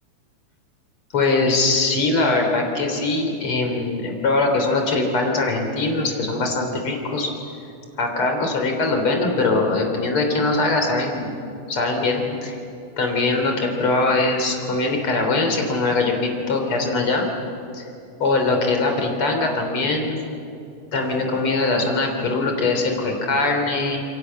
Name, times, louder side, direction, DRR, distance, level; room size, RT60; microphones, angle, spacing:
voice 1, 1.1-7.3 8.0-11.3 11.7-12.6 13.0-17.2 17.7-17.8 18.2-20.2 20.9-24.0, left 3 dB, 40° left, 3 dB, 4.2 m, -22 dB
28.5 x 23.0 x 7.7 m, 2.6 s
omnidirectional pair, 3.7 m